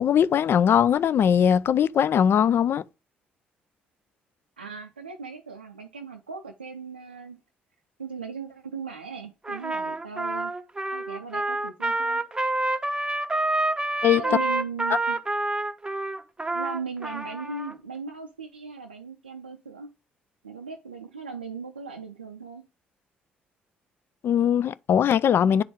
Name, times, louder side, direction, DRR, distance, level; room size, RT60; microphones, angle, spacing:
voice 1, 0.0-2.8 14.0-14.2 24.2-25.6, left 8 dB, 45° left, 0.4 m, -20 dB
voice 2, 4.6-7.4 8.0-10.5 10.9-12.2 14.1-15.2 16.5-19.9 20.4-22.6, right 5 dB, 85° right, 0.4 m, -38 dB
Trumpet, 9.4-17.7, right 2 dB, 15° right, 0.7 m, -28 dB
9.0 x 4.2 x 3.5 m
figure-of-eight pair, 45°, 5 cm